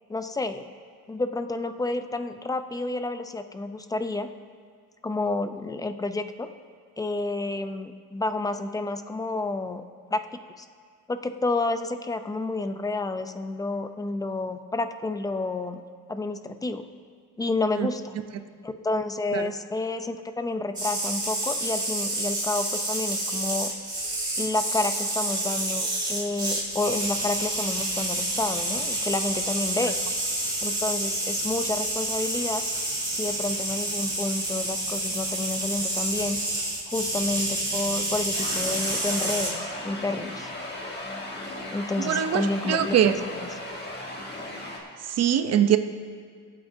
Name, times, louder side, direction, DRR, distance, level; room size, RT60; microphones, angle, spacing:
voice 1, 0.1-0.7 1.1-4.3 5.0-6.5 7.0-9.8 10.1-10.2 10.6-10.7 11.1-15.8 16.1-16.8 17.4-18.1 18.6-23.7 24.4-29.9 30.6-32.6 33.1-36.4 36.9-40.5 41.7-43.5, left 2 dB, 10° left, 9 dB, 0.5 m, -30 dB
sound 1, 20.8-39.5, right 1 dB, 10° right, 2.9 m, -29 dB
sound 2, 38.3-44.8, left 1 dB, 30° left, 1.8 m, -36 dB
voice 2, 42.0-43.1 45.2-45.8, right 10 dB, 50° right, 9 dB, 0.7 m, -22 dB
23.5 x 8.7 x 2.7 m, 2.1 s
cardioid pair, 140°, 34 cm